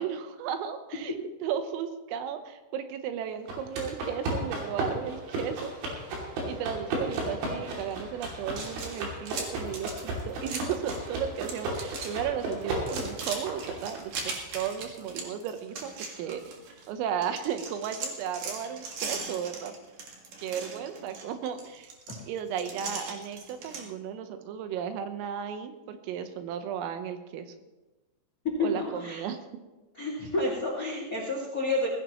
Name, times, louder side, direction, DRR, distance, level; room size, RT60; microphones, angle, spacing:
voice 1, 0.0-5.7 6.4-16.6 16.9-19.7 20.4-21.9 22.2-27.5 28.6-29.4, right 8 dB, 90° right, 8 dB, 3.7 m, -35 dB
sound 1, 3.5-14.0, right 1 dB, 70° right, 5.2 m, -34 dB
sound 2, 8.5-11.1 11.3-12.1 12.4-16.9 17.2-23.8, right 4 dB, 55° right, 2.8 m, -39 dB
voice 2, 28.6-29.2 30.0-31.9, left 2 dB, 75° left, -1 dB, 0.8 m, -30 dB
17.5 x 16.0 x 3.1 m, 1.1 s
omnidirectional pair, 5.8 m